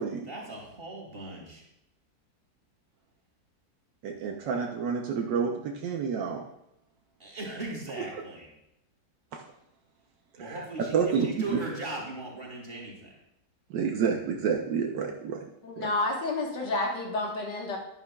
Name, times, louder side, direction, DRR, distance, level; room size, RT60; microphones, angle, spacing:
voice 1, 0.3-1.6 7.2-8.5 10.4-13.1, right 2 dB, 30° right, -2 dB, 2.7 m, -38 dB
voice 2, 4.0-6.4 9.3-9.4 10.4-10.6 10.9-11.6 13.7-15.4 15.8-15.9, right 6 dB, 75° right, 1 dB, 1.5 m, -29 dB
voice 3, 15.6-17.8, left 2 dB, 70° left, 0 dB, 2.1 m, -30 dB
11.5 x 10.5 x 2.3 m, 0.81 s
omnidirectional pair, 2.0 m